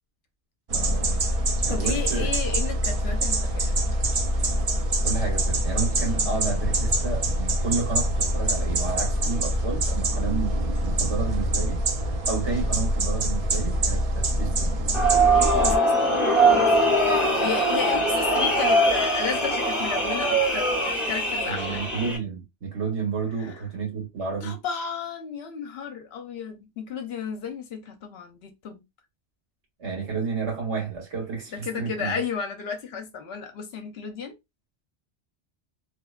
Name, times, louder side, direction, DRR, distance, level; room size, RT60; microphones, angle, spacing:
sound 1, 0.7-15.8, right 1 dB, 60° right, 0.4 m, -25 dB
voice 1, 0.7-1.2 1.6-2.3 5.0-11.8 12.3-14.7 21.5-24.6 29.8-32.2, right 5 dB, 80° right, 1.3 m, -31 dB
voice 2, 1.7-3.8 15.3-16.8 17.4-21.8 23.4-23.6 24.4-28.9 31.5-34.3, left 6 dB, 70° left, 0.8 m, -33 dB
sound 2, 14.9-22.2, right 1 dB, ahead, 0.6 m, -22 dB
2.7 x 2.1 x 2.3 m
omnidirectional pair, 1.2 m